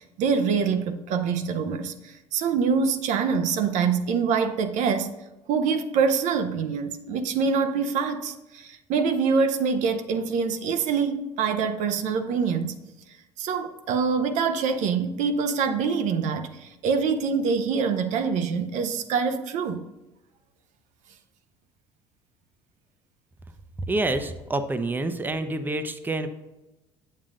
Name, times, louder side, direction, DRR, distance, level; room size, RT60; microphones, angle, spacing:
voice 1, 0.0-5.1 5.5-12.8 13.4-19.8, right 5 dB, 60° right, 0.6 m, -25 dB
voice 2, 23.9-26.3, right 2 dB, 15° right, 0.6 m, -27 dB
7.3 x 7.3 x 2.5 m
hypercardioid pair, 65°, 14 cm